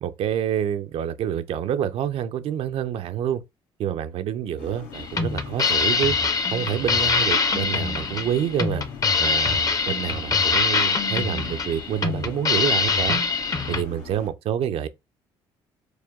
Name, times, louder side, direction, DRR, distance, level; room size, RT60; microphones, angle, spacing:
voice 1, 0.0-3.4 3.8-6.1 6.5-8.8 9.2-13.2 13.7-14.9, right 9 dB, 65° right, 0.5 m, -27 dB
sound 1, 4.6-14.3, left 7 dB, 85° left, 1.5 m, -42 dB
sound 2, 4.9-13.8, left 4 dB, 35° left, 0.7 m, -23 dB
4.8 x 2.2 x 3.5 m
supercardioid pair, 80°, 11 cm